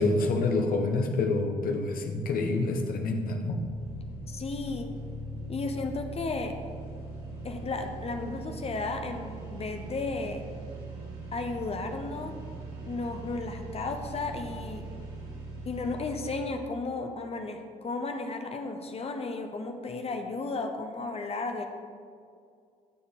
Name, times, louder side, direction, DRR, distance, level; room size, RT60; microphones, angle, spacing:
voice 1, 0.0-3.6, left 3 dB, 50° left, 4 dB, 1.4 m, -27 dB
sound 1, 3.5-16.5, right 2 dB, 65° right, 1.8 m, -40 dB
voice 2, 4.3-4.9 5.5-6.5 7.4-10.4 11.3-12.3 12.8-14.8 15.6-21.6, left 3 dB, 30° left, 5 dB, 1.2 m, -34 dB
14.5 x 7.1 x 4.0 m, 2.3 s
figure-of-eight pair, 45°, 19 cm